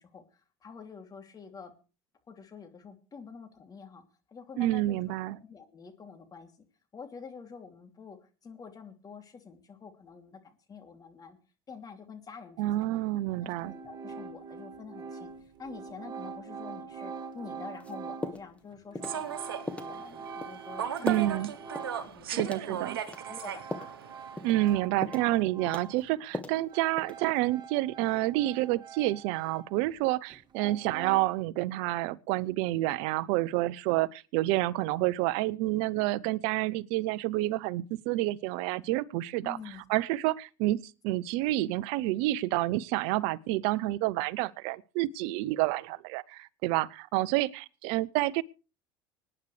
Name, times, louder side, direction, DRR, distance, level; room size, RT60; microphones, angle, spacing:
voice 1, 0.0-1.7 2.3-4.0 4.3-6.7 6.9-11.4 11.7-13.0 13.4-19.4 19.8-22.9 23.2-24.0 39.4-39.8, left 5 dB, 30° left, 2.8 m, -47 dB
voice 2, 4.6-5.4 12.6-13.7 21.0-21.5 22.3-23.0 24.4-39.6 39.9-48.4, right 17 dB, 65° right, 0.6 m, -29 dB
sound 1, 12.8-12.9 13.3-22.2 22.5-26.1 26.3-30.0 30.3-31.2, right 5 dB, 40° right, 2.1 m, -44 dB
sound 2, 17.8-17.9 18.2-18.6 18.9-19.2 19.7-19.9 20.4-20.6 21.1-21.3 21.7-21.9 22.4-22.7 23.1-24.0 24.4-24.6 25.0-25.4 25.7-26.6 27.0-27.4, left 2 dB, 10° left, 1.6 m, -37 dB
Human voice / Subway metro underground, 19.0-24.7, right 9 dB, 90° right, 1.0 m, -38 dB
25.0 x 9.8 x 3.3 m
hypercardioid pair, 80°, 12 cm